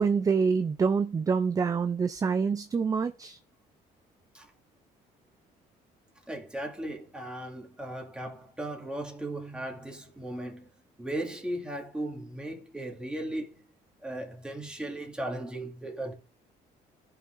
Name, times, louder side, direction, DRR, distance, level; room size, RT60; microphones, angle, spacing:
voice 1, 0.0-3.4, right 5 dB, 20° right, 0.4 m, -26 dB
voice 2, 6.3-10.7 11.0-13.6 14.0-16.1, right 1 dB, 5° right, 2.0 m, -37 dB
14.5 x 5.7 x 2.5 m
cardioid pair, 110°, 17 cm